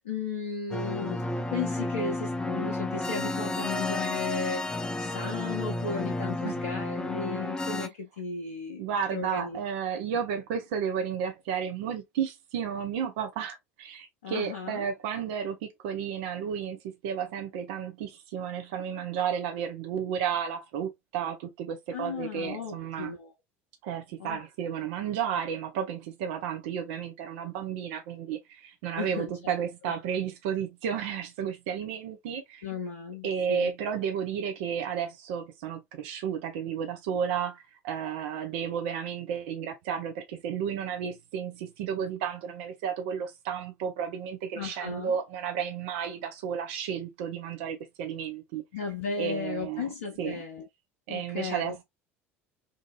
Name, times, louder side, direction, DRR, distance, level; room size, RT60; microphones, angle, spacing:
voice 1, 0.0-8.8 9.1-9.6 14.2-14.9 21.9-23.3 24.2-24.4 29.0-29.6 32.6-33.7 44.5-45.2 48.7-50.6 51.1-51.8, left 5 dB, 75° left, 0.5 m, -35 dB
sound 1, 0.7-7.9, left 2 dB, 10° left, 0.4 m, -32 dB
voice 2, 8.8-23.1 23.8-32.7 33.2-48.6 49.2-49.9 50.2-50.4 51.1-51.8, right 8 dB, 60° right, 0.6 m, -32 dB
2.7 x 2.6 x 2.2 m
figure-of-eight pair, 70°, 7 cm